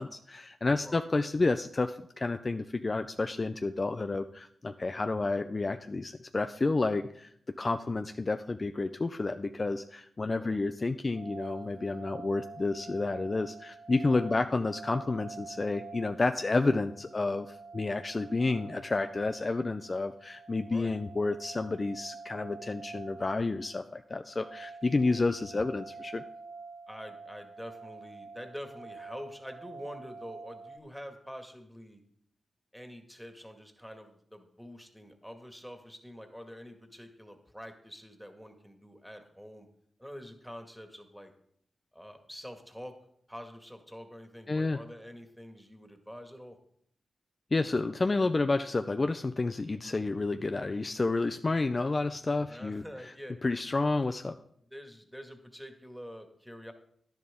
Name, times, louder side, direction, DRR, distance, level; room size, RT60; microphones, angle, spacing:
voice 1, 0.0-7.3 7.6-26.2 44.5-44.8 47.5-52.8 53.4-54.4, left 3 dB, 40° left, 8 dB, 0.5 m, -30 dB
sound 1, 11.1-30.8, right 4 dB, 60° right, 0.9 m, -47 dB
voice 2, 26.9-32.0 32.7-39.7 40.0-41.3 41.9-43.0 43.3-46.6 52.5-53.4 54.7-56.7, equal, ahead, 5 dB, 2.0 m, -46 dB
10.5 x 10.5 x 3.7 m, 0.67 s
supercardioid pair, 45°, 0 cm